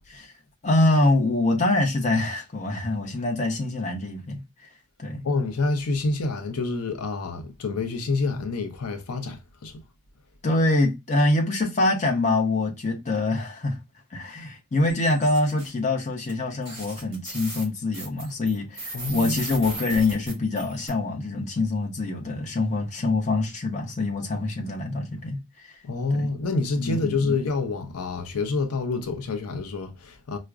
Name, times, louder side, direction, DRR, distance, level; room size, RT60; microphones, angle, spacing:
voice 1, 0.6-4.4 5.0-5.2 10.4-13.8 14.1-25.7 26.1-26.3 26.8-27.4, left 2 dB, 35° left, 0.7 m, -25 dB
voice 2, 5.2-9.8 18.9-19.4 25.8-30.4, left 3 dB, 85° left, 0.6 m, -27 dB
sound 1, 14.9-15.7 16.3-16.4 16.6-20.9, right 2 dB, 25° right, 1.6 m, -37 dB
4.6 x 2.1 x 2.3 m
head